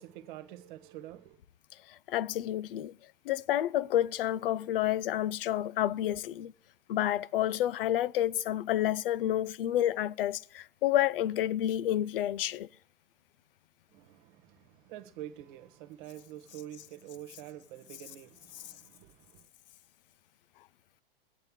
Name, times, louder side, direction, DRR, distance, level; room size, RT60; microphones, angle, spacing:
voice 1, 0.0-1.4 13.9-19.4, right 12 dB, 55° right, 1.3 m, -47 dB
voice 2, 2.1-2.9 3.3-6.5 6.9-12.7, left 12 dB, 65° left, 0.6 m, -29 dB
22.5 x 8.0 x 3.7 m
hypercardioid pair, 115°, 29 cm